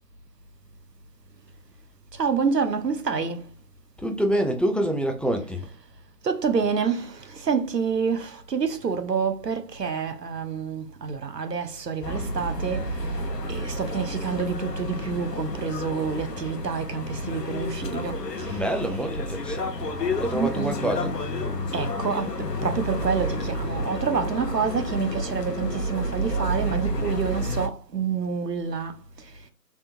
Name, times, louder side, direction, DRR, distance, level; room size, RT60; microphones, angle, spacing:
voice 1, 2.1-3.5 5.5-5.7 6.2-19.1 20.3-20.8 21.7-29.5, right 6 dB, 85° right, 0.8 m, -28 dB
voice 2, 4.0-5.7 18.5-19.9 20.2-21.2, right 1 dB, ahead, 0.4 m, -27 dB
sound 1, 12.0-27.7, left 1 dB, 80° left, 0.8 m, -30 dB
3.4 x 2.7 x 2.7 m
figure-of-eight pair, 180°, 48 cm